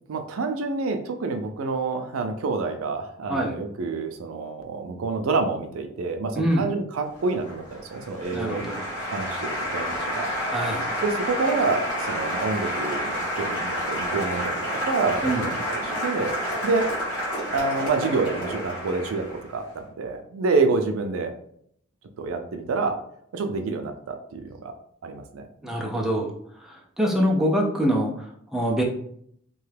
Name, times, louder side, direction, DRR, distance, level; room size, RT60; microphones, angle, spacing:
voice 1, 0.1-8.6 9.0-16.4 16.6-16.9 17.5-21.3 22.2-23.0 23.3-24.7 25.0-25.5, right 4 dB, 85° right, 6 dB, 0.4 m, -28 dB
voice 2, 6.4-6.7 8.3-8.8 10.5-10.9 15.2-15.4 25.6-26.3 26.6-28.8, equal, ahead, -2 dB, 0.4 m, -25 dB
Applause, 7.1-19.6, equal, 20° left, 1.4 m, -30 dB
2.8 x 2.3 x 3.2 m, 0.68 s
head